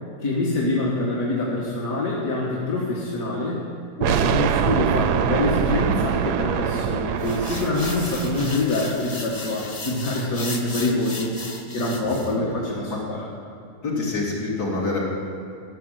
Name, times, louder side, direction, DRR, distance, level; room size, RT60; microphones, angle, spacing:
voice 1, 0.2-3.7 4.0-11.3 11.7-13.3, left 2 dB, 60° left, -5 dB, 1.9 m, -25 dB
sound 1, 4.0-8.9, right 8 dB, 85° right, 1.2 m, -24 dB
sound 2, 7.2-12.4, left 3 dB, 30° left, 0.7 m, -36 dB
voice 2, 12.0-12.5 12.9-13.0 13.8-15.1, left 3 dB, 75° left, -4 dB, 3.1 m, -27 dB
14.0 x 6.3 x 7.6 m, 2.5 s
omnidirectional pair, 1.7 m